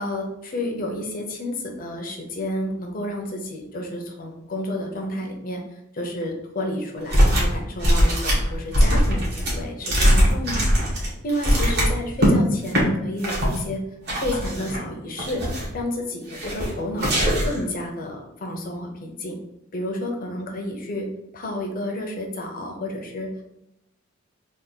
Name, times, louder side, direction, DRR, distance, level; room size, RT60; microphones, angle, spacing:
voice 1, 0.0-5.6 5.9-10.7 11.2-13.8 14.1-15.4 15.7-17.1 17.4-19.4 19.7-21.1 21.3-23.3, left 1 dB, 45° left, 2 dB, 0.7 m, -30 dB
sound 1, 7.1-7.5 7.8-12.3 12.7-12.8 13.2-13.6 14.1-14.8 15.2-15.8 16.3-16.7 17.0-17.6, equal, 55° right, 1.3 m, -20 dB
3.5 x 2.4 x 3.9 m, 0.83 s
head